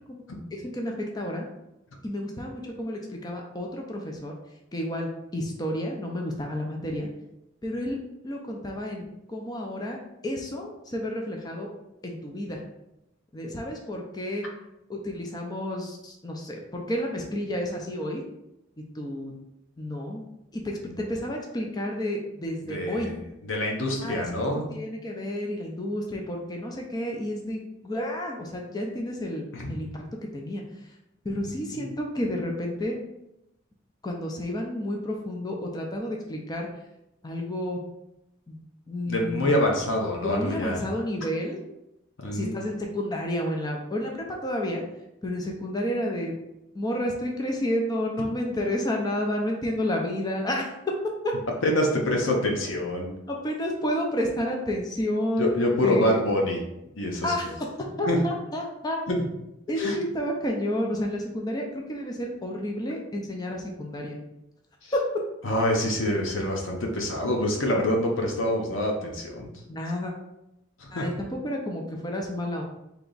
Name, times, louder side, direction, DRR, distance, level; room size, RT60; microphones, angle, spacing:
voice 1, 0.5-1.5 2.0-4.3 4.7-7.1 7.6-8.0 8.2-9.0 9.3-10.0 10.2-11.7 12.0-12.6 13.3-14.4 14.9-18.2 19.0-19.3 19.8-20.2 20.5-23.1 24.0-24.2 24.7-30.0 30.3-30.6 31.2-33.0 34.0-36.7 37.2-37.8 38.5-38.6 38.9-39.5 40.2-41.6 42.3-44.8 45.2-46.3 46.7-50.7 53.3-55.5 55.8-56.2 57.2-57.5 57.8-59.0 59.7-64.2 64.9-65.0 69.7-70.1 70.9-72.6, left 1 dB, 20° left, 0 dB, 0.5 m, -30 dB
voice 2, 22.6-24.7 29.5-29.7 31.7-31.8 39.1-40.8 42.2-42.6 51.6-53.1 55.4-56.6 57.0-57.3 58.0-58.2 59.1-59.3 59.8-60.0 64.8-64.9 65.4-69.5 70.8-71.1, left 1 dB, 85° left, 0 dB, 0.9 m, -26 dB
3.4 x 2.9 x 3.9 m, 0.86 s
head